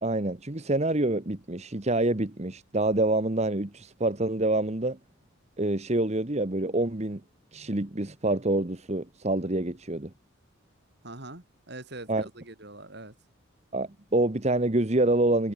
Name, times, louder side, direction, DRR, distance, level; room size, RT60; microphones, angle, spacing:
voice 1, 0.0-5.0 5.6-7.2 7.5-10.1 12.1-12.2 13.7-15.5, right 2 dB, 30° right, 1.2 m, -26 dB
voice 2, 11.0-13.2, right 2 dB, 55° right, 6.8 m, -43 dB
head